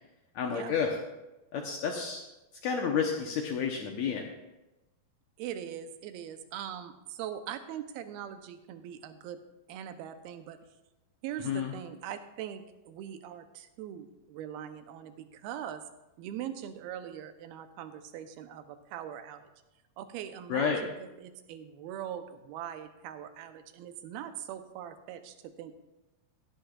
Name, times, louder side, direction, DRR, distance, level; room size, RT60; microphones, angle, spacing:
voice 1, 0.3-0.9 1.5-2.2 2.6-4.3 11.4-11.7 20.5-20.8, left 6 dB, 80° left, 1 dB, 1.6 m, -30 dB
voice 2, 5.4-9.4 9.7-10.6 11.2-15.8 16.2-19.5 20.0-25.8, right 10 dB, 80° right, 9 dB, 2.6 m, -41 dB
16.5 x 11.5 x 2.4 m, 0.99 s
omnidirectional pair, 4.5 m